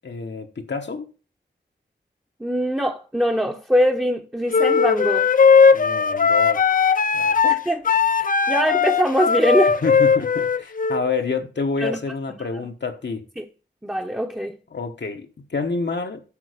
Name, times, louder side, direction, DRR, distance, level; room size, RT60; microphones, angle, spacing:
voice 1, 0.0-1.0 5.7-6.6 7.1-7.4 9.8-13.2 14.7-16.2, left 4 dB, 65° left, 1.2 m, -28 dB
voice 2, 2.4-5.4 7.4-9.8 11.8-12.0 13.4-13.5 13.8-14.6, equal, 10° right, 0.9 m, -23 dB
sound 1, 4.5-11.0, left 5 dB, 45° left, 0.4 m, -18 dB
8.5 x 5.8 x 5.0 m
wide cardioid pair, 55°, 19 cm